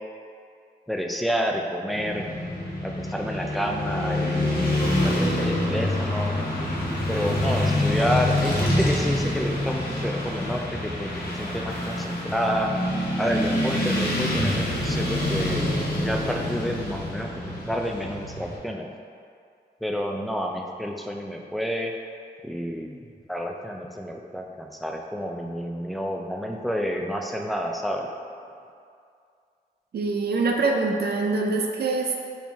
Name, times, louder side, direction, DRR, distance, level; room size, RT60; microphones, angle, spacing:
voice 1, 0.9-2.2 2.8-6.3 7.1-12.7 13.2-15.7 16.0-18.9 19.8-21.9 22.4-23.0 23.3-28.1, equal, ahead, 1 dB, 0.5 m, -29 dB
Motorcycle / Traffic noise roadway noise, 1.9-18.6, left 1 dB, 55° left, 1.2 m, -26 dB
voice 2, 29.9-32.2, right 3 dB, 60° right, 1 dB, 0.5 m, -24 dB
4.4 x 2.8 x 3.5 m, 2.3 s
cardioid pair, 50°, 18 cm